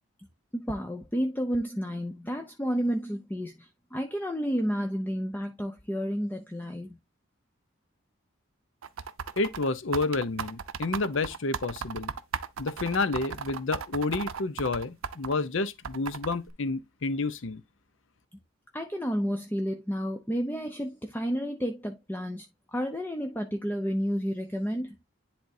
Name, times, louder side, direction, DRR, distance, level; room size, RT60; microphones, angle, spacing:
voice 1, 0.5-7.0 18.7-24.9, equal, 10° left, 0.5 m, -31 dB
sound 1, 8.8-15.3 15.8-16.5, right 6 dB, 80° right, 0.5 m, -35 dB
voice 2, 9.4-12.1 12.6-17.6, left 3 dB, 70° left, 0.7 m, -30 dB
10.5 x 3.5 x 2.7 m
head